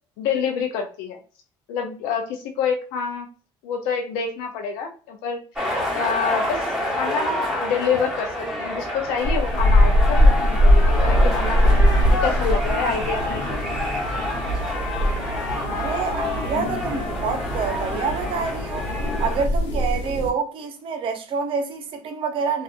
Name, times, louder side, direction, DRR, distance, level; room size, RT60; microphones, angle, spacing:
voice 1, 0.2-1.2 1.7-3.3 3.6-5.4 5.9-6.7 7.0-11.7 12.1-13.6, left 6 dB, 85° left, 0.4 m, -27 dB
sound 1, 5.6-19.4, left 1 dB, 5° right, 1.2 m, -28 dB
sound 2, 9.2-20.3, equal, 60° left, 0.9 m, -21 dB
Trumpet, 10.6-18.7, left 2 dB, 35° left, 1.1 m, -38 dB
voice 2, 15.7-18.9 19.2-22.6, right 5 dB, 55° right, 0.7 m, -27 dB
2.5 x 2.4 x 2.4 m
supercardioid pair, 100°, 11 cm